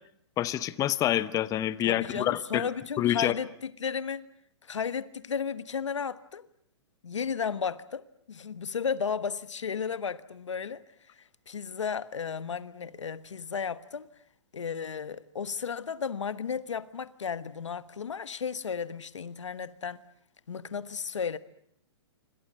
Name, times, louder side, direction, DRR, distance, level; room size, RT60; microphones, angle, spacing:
voice 1, 0.4-2.6 3.0-3.3, left 12 dB, 20° left, 1.0 m, -27 dB
voice 2, 1.8-4.3 4.6-6.5 7.0-10.8 11.1-14.1 14.5-20.0 20.5-21.4, left 6 dB, 90° left, 1.3 m, -34 dB
27.0 x 25.0 x 7.6 m
hypercardioid pair, 135°, 15 cm